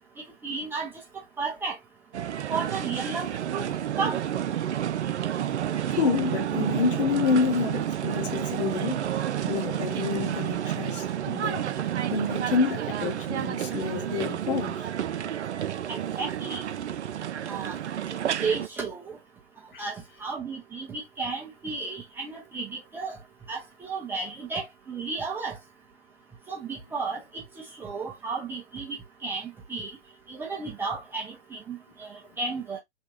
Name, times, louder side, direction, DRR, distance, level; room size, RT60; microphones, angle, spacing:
voice 1, 0.4-0.9 1.4-1.8 2.5-4.2 15.9-16.6 17.5-17.8 18.2-19.2 19.8-23.2 23.5-25.6 26.5-27.4 27.8-29.0 29.2-29.9 30.3-32.8, right 4 dB, 5° right, 0.6 m, -33 dB
sound 1, 2.1-18.7, right 10 dB, 75° right, 0.5 m, -30 dB
voice 2, 5.9-9.1 9.5-11.8 12.1-14.9 19.7-19.8, left 5 dB, 50° left, 0.9 m, -28 dB
3.3 x 2.2 x 3.1 m
figure-of-eight pair, 125°, 35 cm